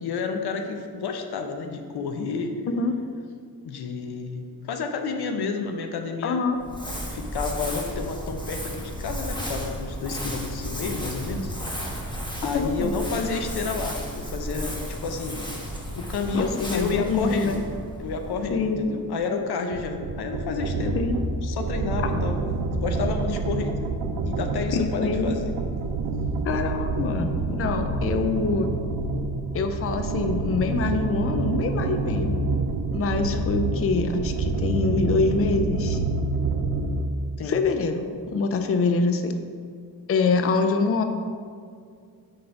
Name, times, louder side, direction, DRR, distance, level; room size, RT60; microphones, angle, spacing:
voice 1, 0.0-2.5 3.6-6.4 7.1-11.5 12.4-15.4 15.9-17.6 18.0-21.0 21.4-22.4 22.7-23.9 24.2-25.5 37.4-37.6, left 4 dB, 85° left, 5 dB, 0.7 m, -30 dB
voice 2, 6.2-6.6 12.5-12.9 16.3-17.6 18.5-18.9 20.9-21.2 22.0-22.2 24.7-25.3 26.4-28.7 29.5-32.4 32.9-36.0 37.4-38.1 38.3-39.3 40.1-41.0, left 4 dB, 40° left, 7 dB, 0.5 m, -25 dB
Crumpling crinkling, 6.6-19.0, equal, 10° left, 1.2 m, -33 dB
sound 1, 19.7-37.1, right 3 dB, 70° right, 0.6 m, -27 dB
5.0 x 4.2 x 5.6 m, 2.2 s
cardioid pair, 90°, 37 cm